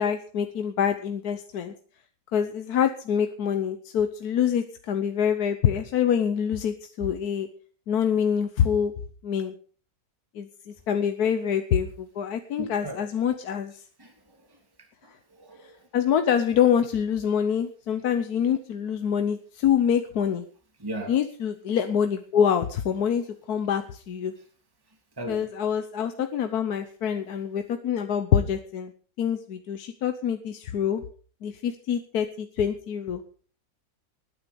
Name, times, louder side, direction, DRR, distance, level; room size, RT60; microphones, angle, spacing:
voice 1, 0.0-1.7 2.3-7.5 7.9-8.9 9.2-9.5 10.3-13.8 15.1-15.2 15.6-20.4 21.1-24.3 25.3-28.9 29.2-31.0 31.4-33.2, left 8 dB, 60° left, 1.3 m, -26 dB
voice 2, 12.6-13.0 14.0-14.6 15.0-15.9 20.8-21.1 25.2-25.5, right 1 dB, 10° right, 2.8 m, -38 dB
19.5 x 10.0 x 5.2 m
omnidirectional pair, 2.0 m